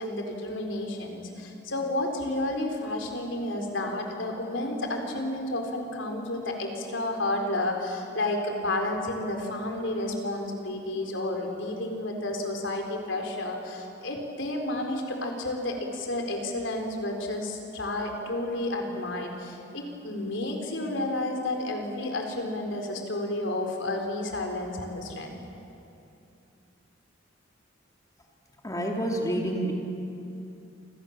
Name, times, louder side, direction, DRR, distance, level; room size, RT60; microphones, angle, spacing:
voice 1, 0.0-25.4, left 1 dB, 70° left, 3 dB, 4.2 m, -31 dB
voice 2, 28.6-29.7, right 1 dB, 20° left, 0 dB, 2.8 m, -28 dB
28.5 x 27.0 x 7.5 m, 2.7 s
head